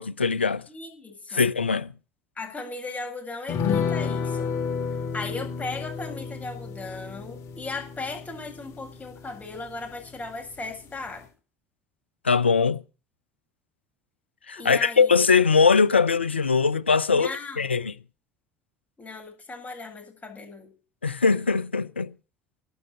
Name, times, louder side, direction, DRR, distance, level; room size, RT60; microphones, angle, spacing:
voice 1, 0.0-0.6 1.3-1.9 12.2-12.8 14.5-17.3 17.6-17.9 21.0-22.1, left 5 dB, 85° left, 0.6 m, -21 dB
voice 2, 0.7-1.4 2.4-4.5 5.1-11.3 14.6-15.1 17.1-17.7 19.0-20.7, left 3 dB, 25° left, 7.9 m, -37 dB
sound 1, 3.5-10.3 10.6-10.7 11.0-11.2, left 6 dB, 55° left, 2.7 m, -31 dB
12.5 x 7.8 x 8.7 m
figure-of-eight pair, 55°, 6 cm